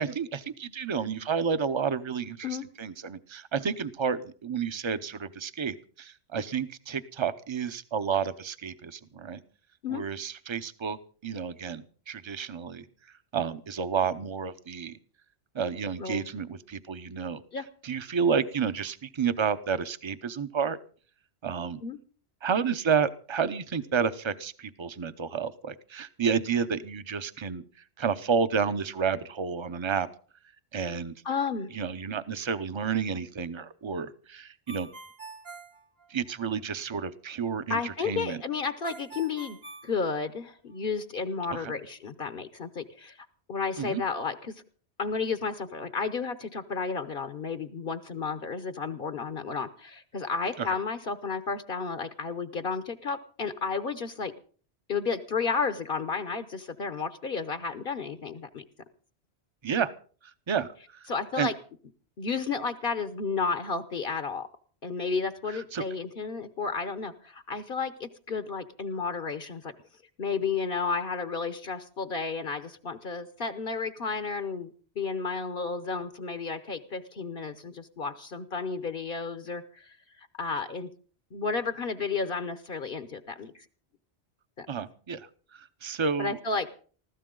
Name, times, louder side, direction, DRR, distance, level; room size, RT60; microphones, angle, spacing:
voice 1, 0.0-9.4 9.9-12.8 13.3-15.0 15.5-17.4 17.8-20.8 21.4-21.8 22.4-27.6 28.0-30.1 30.7-31.1 31.7-34.9 36.1-38.4 41.5-41.7 43.8-44.0 50.6-50.7 59.6-59.9 60.5-61.1 61.4-61.5 65.5-65.8 84.7-86.4, right 6 dB, 30° right, 13 dB, 0.7 m, -30 dB
voice 2, 31.2-31.7 37.7-39.6 39.8-43.2 43.5-44.6 45.0-54.3 54.9-58.6 61.1-61.5 62.2-64.5 64.8-69.7 70.2-80.9 81.3-83.6 84.6-84.7 86.2-86.7, left 5 dB, 60° left, 11 dB, 1.0 m, -32 dB
Ringtone, 34.7-36.6 38.8-40.7, right 3 dB, 60° right, 2.3 m, -46 dB
20.0 x 15.0 x 3.8 m, 0.42 s
omnidirectional pair, 1.1 m